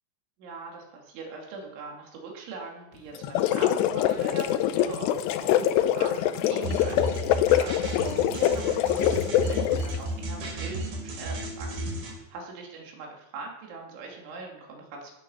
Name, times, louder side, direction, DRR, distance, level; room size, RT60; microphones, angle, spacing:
voice 1, 0.4-15.1, right 3 dB, 75° right, 0 dB, 5.1 m, -41 dB
sound 1, 3.2-10.0, left 11 dB, 80° left, 2.5 m, -24 dB
sound 2, 6.3-12.2, right 2 dB, 90° right, 5.3 m, -44 dB
sound 3, 6.6-12.1, right 1 dB, 55° right, 4.7 m, -33 dB
18.0 x 9.7 x 5.8 m, 0.93 s
omnidirectional pair, 5.5 m